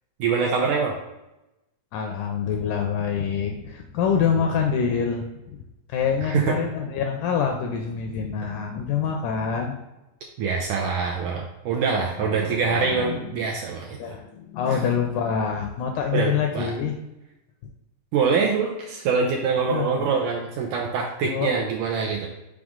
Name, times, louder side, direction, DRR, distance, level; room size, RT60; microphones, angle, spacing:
voice 1, 0.2-0.9 6.2-6.5 10.4-14.2 14.7-14.8 16.1-16.7 18.1-22.3, right 5 dB, 80° right, 0 dB, 1.8 m, -24 dB
voice 2, 1.9-5.2 5.9-9.8 12.2-13.3 14.0-17.0 19.7-20.1 21.2-21.5, left 7 dB, 80° left, 3 dB, 1.9 m, -26 dB
6.3 x 4.9 x 3.6 m, 0.95 s
omnidirectional pair, 4.2 m